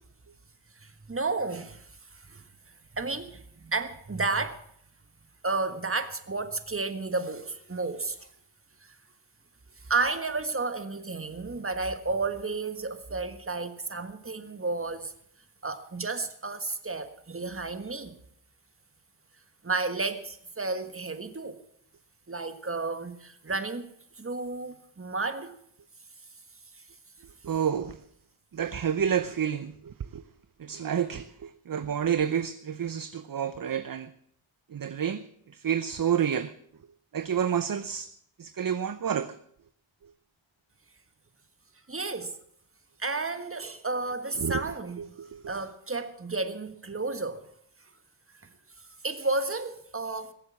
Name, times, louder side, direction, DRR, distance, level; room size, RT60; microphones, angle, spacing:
voice 1, 0.8-1.9 2.1-2.4 2.9-4.6 5.4-8.3 8.8-8.9 9.8-15.1 15.6-18.2 19.6-21.6 22.3-25.5 41.9-42.4 43.0-45.1 45.5-47.4 49.0-50.3, right 3 dB, 25° right, 1.5 m, -32 dB
voice 2, 27.4-28.0 28.5-30.2 30.6-34.1 34.7-35.2 35.5-36.5 37.1-38.1 38.4-39.3 44.4-44.6 45.0-45.4, right 8 dB, 45° right, 0.7 m, -29 dB
21.5 x 7.8 x 7.3 m
wide cardioid pair, 95°, 49 cm